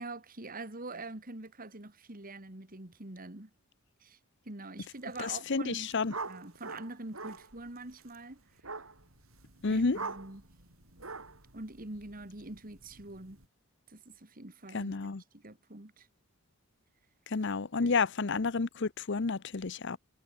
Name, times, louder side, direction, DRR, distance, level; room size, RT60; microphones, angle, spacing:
voice 1, 0.0-3.5 4.0-4.2 4.5-5.9 6.2-8.4 9.7-10.5 11.5-13.4 13.9-15.0 15.3-16.1 17.8-17.9, right 2 dB, 40° right, 2.5 m, -44 dB
sound 1, 5.0-5.4 5.7-13.5, right 4 dB, 80° right, 6.9 m, -45 dB
voice 2, 5.2-6.1 9.6-10.0 14.7-15.2 17.3-20.0, left 4 dB, 55° left, 0.8 m, -30 dB
head